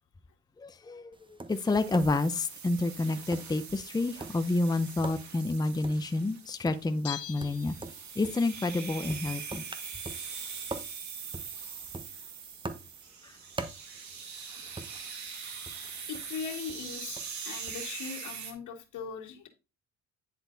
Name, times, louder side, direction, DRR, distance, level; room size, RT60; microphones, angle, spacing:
voice 1, 0.6-7.7 8.2-9.6 13.2-13.3, left 2 dB, 15° left, 0.7 m, -29 dB
Tap, 1.1-17.9, right 2 dB, 15° right, 1.1 m, -46 dB
sound 1, 1.5-18.5, right 6 dB, 65° right, 1.9 m, -43 dB
Bell, 7.0-8.4 8.7-8.8, left 10 dB, 50° left, 0.8 m, -43 dB
voice 2, 16.1-19.5, left 6 dB, 80° left, 2.1 m, -40 dB
10.0 x 4.3 x 4.0 m
cardioid pair, 90°, 30 cm